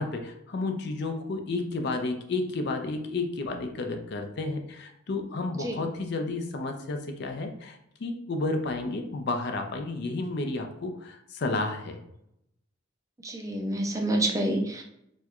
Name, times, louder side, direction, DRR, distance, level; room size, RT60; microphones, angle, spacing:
voice 1, 0.0-12.0, left 3 dB, 55° left, 5 dB, 0.4 m, -31 dB
voice 2, 13.2-14.8, right 1 dB, 15° right, 2 dB, 0.4 m, -28 dB
4.3 x 2.2 x 2.3 m, 0.76 s
head